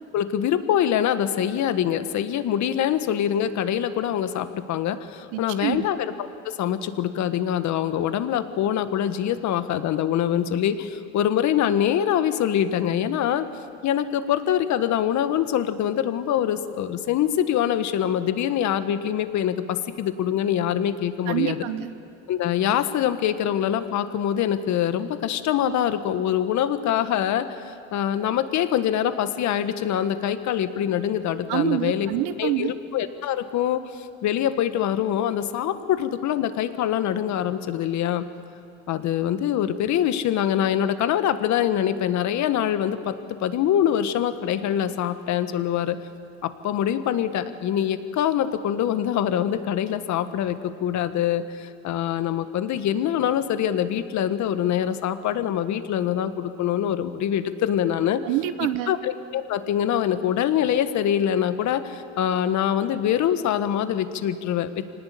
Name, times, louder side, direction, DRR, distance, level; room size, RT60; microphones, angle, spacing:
voice 1, 0.1-6.1 6.4-13.5 13.8-21.6 22.3-32.1 32.4-38.2 38.9-46.0 46.4-58.2 58.9-64.8, left 10 dB, 55° left, 10 dB, 1.6 m, -24 dB
voice 2, 5.3-5.8 21.3-21.9 31.5-32.7 58.2-59.0, right 13 dB, 75° right, 10 dB, 1.3 m, -26 dB
26.0 x 19.0 x 8.5 m, 2.6 s
supercardioid pair, 90°, 33 cm